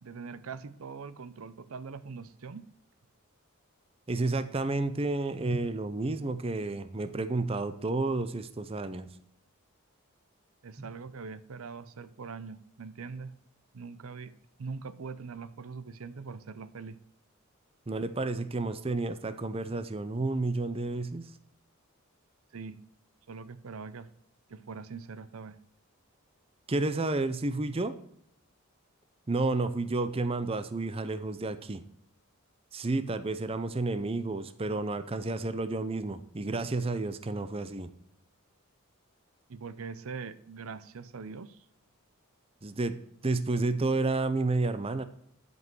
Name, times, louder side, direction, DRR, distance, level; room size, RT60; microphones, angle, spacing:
voice 1, 0.0-2.7 10.6-13.3 13.7-14.3 14.6-17.0 22.5-22.8 23.3-24.1 24.5-25.6 39.5-41.7, right 5 dB, 75° right, 14 dB, 0.6 m, -42 dB
voice 2, 4.1-9.1 17.9-21.2 26.7-27.9 29.3-31.8 32.7-37.9 42.6-45.0, right 2 dB, 25° right, 11 dB, 0.6 m, -31 dB
11.0 x 5.4 x 6.0 m, 0.69 s
head